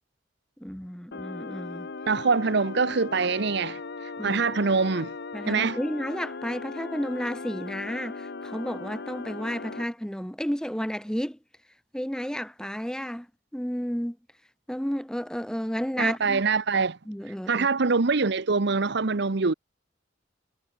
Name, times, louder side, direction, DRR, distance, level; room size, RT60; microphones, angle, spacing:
voice 1, 0.6-1.9 4.2-4.4 5.3-11.4 11.9-13.3 13.5-14.2 14.7-16.4 17.1-17.7, equal, 5° left, 1.3 m, -32 dB
sound 1, 1.1-9.8, left 4 dB, 60° left, 0.9 m, -38 dB
voice 2, 2.1-3.8 4.2-5.1 5.5-5.8 16.0-17.0 17.5-19.5, right 4 dB, 65° right, 0.9 m, -24 dB
head